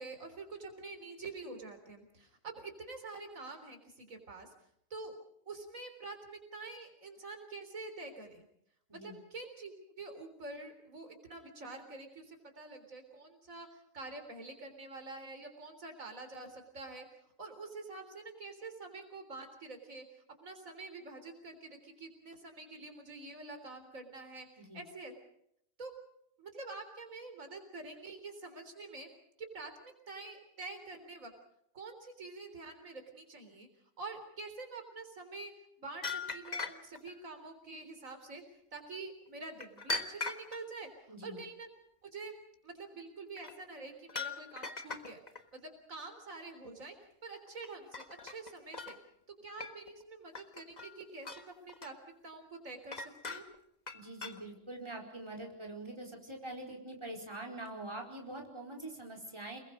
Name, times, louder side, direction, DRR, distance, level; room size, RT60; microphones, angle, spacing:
voice 1, 0.0-4.5 4.9-5.2 5.5-8.4 8.9-17.1 17.4-20.0 20.4-25.1 25.8-25.9 26.4-29.1 29.4-31.3 31.7-33.7 34.0-35.5 35.8-38.4 38.7-40.9 41.2-41.7 42.0-42.4 42.6-45.2 45.5-47.0 47.2-49.0 49.3-53.5, right 3 dB, 90° right, 6 dB, 4.1 m, -47 dB
sound 1, 36.0-37.1 39.6-40.6 43.4-43.5 44.1-45.4 47.5-47.7 47.9-49.0 49.6-50.0 50.3-51.0 51.2-52.0 52.9-53.6 53.9-54.4, left 3 dB, 35° left, 1.6 m, -40 dB
voice 2, 41.1-41.4 53.9-59.6, right 1 dB, 20° right, 0 dB, 4.6 m, -44 dB
29.0 x 21.5 x 5.2 m, 0.73 s
omnidirectional pair, 1.4 m